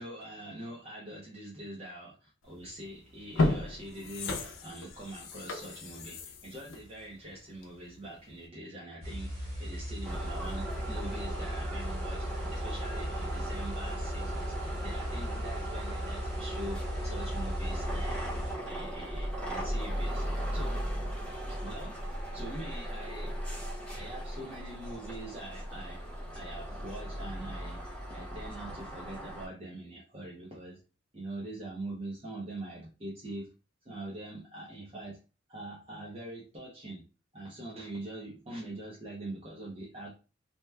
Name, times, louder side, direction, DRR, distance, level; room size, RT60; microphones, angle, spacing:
voice 1, 0.0-20.2 20.5-20.8 21.5-22.0 22.3-23.3 23.9-26.0 26.3-27.8 28.1-30.8 31.1-33.5 33.8-35.2 35.5-37.0 37.3-40.1, right 1 dB, 30° right, -4 dB, 0.7 m, -43 dB
sound 1, 2.6-2.7 3.2-7.9 8.3-8.4, left 2 dB, 90° left, 0.5 m, -34 dB
sound 2, 9.0-18.5, equal, 45° right, 1.5 m, -38 dB
sound 3, 10.0-29.5, right 1 dB, 5° left, 0.8 m, -37 dB
2.9 x 2.1 x 3.3 m, 0.32 s
head